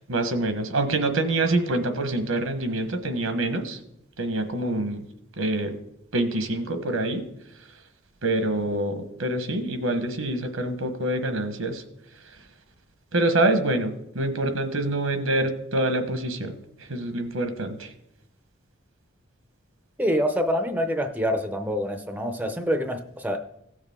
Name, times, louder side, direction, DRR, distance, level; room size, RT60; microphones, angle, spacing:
voice 1, 0.1-3.8 4.2-5.1 5.4-5.7 6.1-7.3 8.2-11.8 13.1-16.6 16.9-17.9, right 2 dB, 80° right, 7 dB, 1.2 m, -26 dB
voice 2, 20.0-23.4, equal, 10° right, 7 dB, 0.6 m, -26 dB
16.5 x 6.6 x 3.6 m, 0.80 s
head